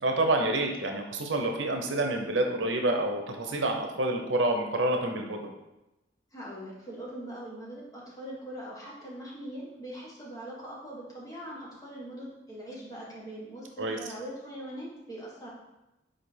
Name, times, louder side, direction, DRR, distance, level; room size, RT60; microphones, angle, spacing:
voice 1, 0.0-5.5 13.8-14.0, right 2 dB, 85° right, 3 dB, 0.8 m, -28 dB
voice 2, 6.3-15.5, right 1 dB, 20° left, -6 dB, 1.5 m, -41 dB
5.1 x 4.6 x 4.5 m, 0.96 s
head